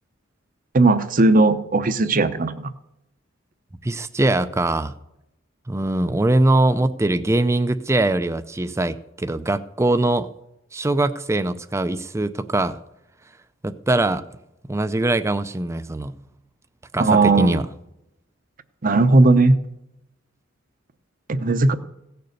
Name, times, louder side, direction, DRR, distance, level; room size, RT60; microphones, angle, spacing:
voice 1, 0.7-2.7 17.0-17.6 18.8-19.6 21.3-21.7, right 3 dB, 45° right, 12 dB, 0.8 m, -17 dB
voice 2, 3.8-4.9 5.7-10.3 10.7-12.8 13.6-14.2 14.7-16.2 16.9-17.7, right 2 dB, 15° right, 11 dB, 0.5 m, -22 dB
16.5 x 6.8 x 6.6 m, 0.86 s
head